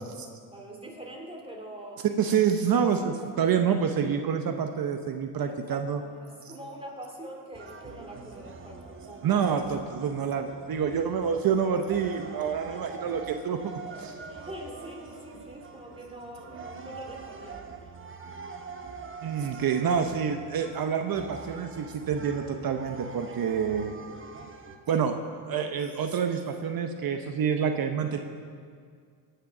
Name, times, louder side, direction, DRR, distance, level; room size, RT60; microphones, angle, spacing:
voice 1, 0.5-2.0 5.5-9.4 14.3-17.7, right 1 dB, 15° right, 0 dB, 2.9 m, -44 dB
voice 2, 2.2-6.0 9.2-13.7 14.0-14.1 19.2-23.9 24.9-25.2 25.5-28.2, right 7 dB, 50° right, 6 dB, 0.9 m, -27 dB
Jogja Campursari Music - Java, 7.5-24.8, right 4 dB, 30° right, 1.1 m, -44 dB
17.0 x 6.7 x 6.0 m, 2.1 s
cardioid pair, 90°, 44 cm